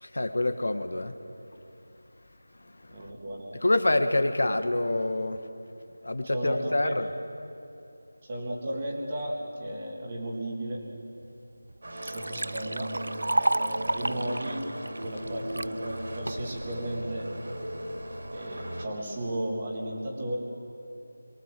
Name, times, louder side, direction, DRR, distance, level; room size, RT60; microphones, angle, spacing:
voice 1, 0.0-1.1 3.0-3.1 3.6-5.4 6.0-7.1, left 2 dB, 65° left, 8 dB, 1.7 m, -26 dB
voice 2, 2.9-3.6 6.3-6.9 8.2-10.8 12.0-12.9 13.3-14.6 15.0-17.3 18.3-20.4, right 1 dB, 20° right, -1 dB, 2.6 m, -34 dB
Liquid, 11.2-11.3 11.7-15.7 16.3-16.7, right 2 dB, 70° right, 0.5 m, -31 dB
sound 1, 11.8-18.9, right 1 dB, 45° right, 3.5 m, -38 dB
28.0 x 22.5 x 7.7 m, 2.8 s
figure-of-eight pair, 180°, 0 cm